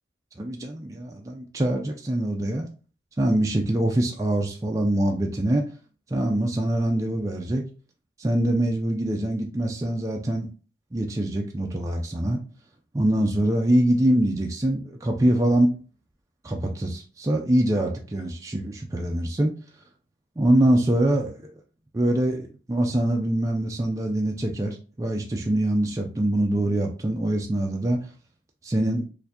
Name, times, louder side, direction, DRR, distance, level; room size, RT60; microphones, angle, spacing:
voice 1, 0.4-2.7 3.2-5.6 6.1-7.6 8.2-10.5 10.9-12.4 12.9-15.7 16.4-19.5 20.4-21.5 21.9-28.0 28.6-29.0, right 1 dB, 20° right, 1 dB, 0.4 m, -24 dB
4.2 x 2.6 x 2.7 m, 0.37 s
head